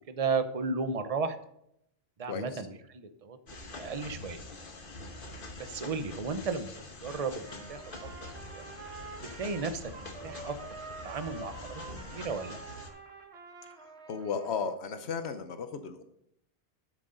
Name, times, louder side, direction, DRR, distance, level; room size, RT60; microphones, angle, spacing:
voice 1, 0.1-1.4 2.2-4.4 5.6-7.8 8.2-8.6 9.3-10.6 11.0-12.6, right 4 dB, 40° right, 10 dB, 0.8 m, -34 dB
voice 2, 2.3-2.6 13.8-16.0, left 5 dB, 85° left, 9 dB, 1.1 m, -35 dB
sound 1, 3.5-12.9, left 2 dB, 55° left, 1.4 m, -45 dB
Trumpet, 7.4-14.8, right 4 dB, 80° right, 1.3 m, -47 dB
12.5 x 7.5 x 3.9 m, 0.76 s
omnidirectional pair, 1.1 m